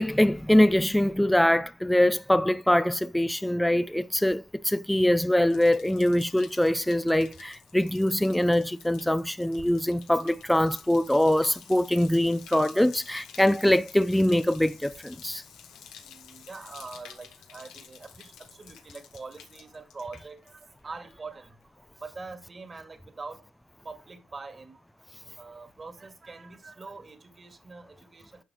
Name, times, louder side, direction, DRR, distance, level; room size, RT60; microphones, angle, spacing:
voice 1, 0.0-15.4, left 1 dB, 5° left, 0.6 m, -23 dB
voice 2, 3.6-4.2 9.6-9.7 16.0-21.6 21.9-23.4 23.8-24.8 25.4-28.4, right 3 dB, 30° right, 2.1 m, -44 dB
Bathtub (filling or washing), 4.8-20.8 21.1-21.6, left 8 dB, 90° left, 2.0 m, -51 dB
11.0 x 6.3 x 3.1 m
cardioid pair, 90°, 0 cm